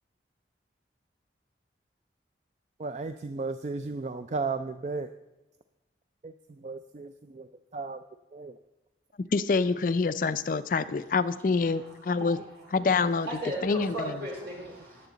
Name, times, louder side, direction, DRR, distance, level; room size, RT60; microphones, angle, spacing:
voice 1, 2.8-5.1 6.2-8.0 8.3-8.6 14.5-14.6, right 4 dB, 40° right, 10 dB, 0.3 m, -35 dB
voice 2, 9.3-12.4 12.7-13.3 13.6-14.2, left 4 dB, 45° left, 13 dB, 0.4 m, -26 dB
voice 3, 11.7-12.7 13.3-15.1, right 1 dB, 65° right, -2 dB, 4.1 m, -37 dB
18.5 x 7.3 x 3.9 m, 1.0 s
head